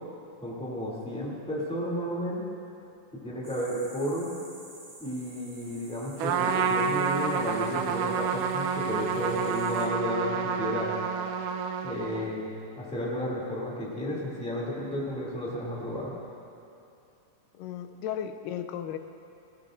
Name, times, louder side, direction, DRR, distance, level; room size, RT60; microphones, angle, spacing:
voice 1, 0.4-2.4 3.2-4.3 5.0-10.9 11.8-12.5 12.7-16.1, equal, ahead, -5 dB, 2.0 m, -32 dB
sound 1, 3.4-9.9, right 2 dB, 25° right, 2.2 m, -51 dB
Trumpet, 6.2-12.4, right 6 dB, 85° right, 2.2 m, -29 dB
voice 2, 17.5-19.0, left 9 dB, 85° left, 9 dB, 2.2 m, -35 dB
20.0 x 16.0 x 2.6 m, 2.7 s
omnidirectional pair, 3.8 m